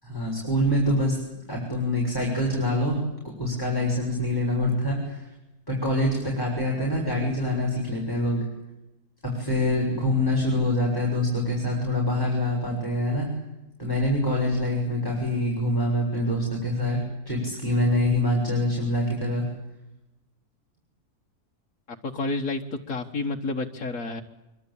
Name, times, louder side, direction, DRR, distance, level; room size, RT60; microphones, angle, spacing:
voice 1, 0.0-1.2 1.5-3.0 3.4-5.3 5.7-8.5 9.2-13.3 13.8-19.5, left 1 dB, 15° left, -2 dB, 6.9 m, -25 dB
voice 2, 21.9-22.6 22.9-24.2, left 3 dB, 65° left, 1 dB, 2.0 m, -30 dB
25.0 x 24.5 x 8.7 m, 0.96 s
omnidirectional pair, 1.6 m